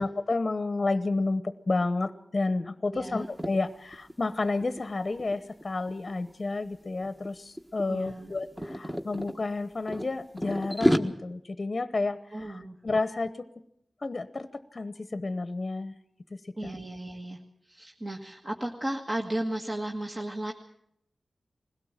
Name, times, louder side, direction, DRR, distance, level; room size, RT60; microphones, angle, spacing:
voice 1, 0.0-12.2 12.5-13.3 14.0-15.9 16.6-16.7, left 3 dB, 40° left, 11 dB, 0.9 m, -30 dB
voice 2, 2.9-3.3 7.9-8.3 12.3-12.8 16.5-17.4 17.6-20.5, right 1 dB, 30° right, 1 dB, 1.7 m, -34 dB
sound 1, 3.2-3.5 3.9-4.1 4.4-6.3 7.0-7.3 7.6-9.4 9.9-11.0, equal, 5° right, 1.4 m, -29 dB
21.0 x 17.0 x 7.4 m, 0.74 s
wide cardioid pair, 90°, 0 cm